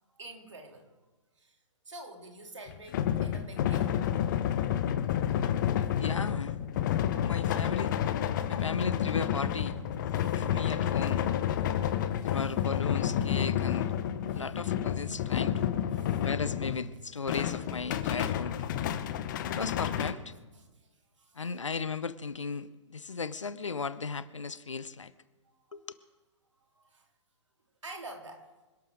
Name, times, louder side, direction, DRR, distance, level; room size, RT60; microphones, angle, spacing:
voice 1, 0.1-0.9 1.4-1.5 1.9-3.9 5.1-5.4 10.1-10.5 12.3-12.4 14.3-14.4 15.9-16.2 20.6-20.7 21.2-21.4 25.4-25.6 25.9-26.0 26.7-27.0 27.8-28.5, right 2 dB, 70° right, 3.1 m, -48 dB
sound 1, 2.7-16.9 17.3-20.1, left 10 dB, 40° left, 1.0 m, -30 dB
voice 2, 6.0-6.5 7.2-7.9 8.5-9.7 10.3-11.2 12.2-13.9 14.3-15.7 16.1-18.5 19.5-20.3 21.4-25.1 25.7-25.8, left 5 dB, 75° left, 0.8 m, -36 dB
26.0 x 12.0 x 3.8 m
figure-of-eight pair, 120°, 16 cm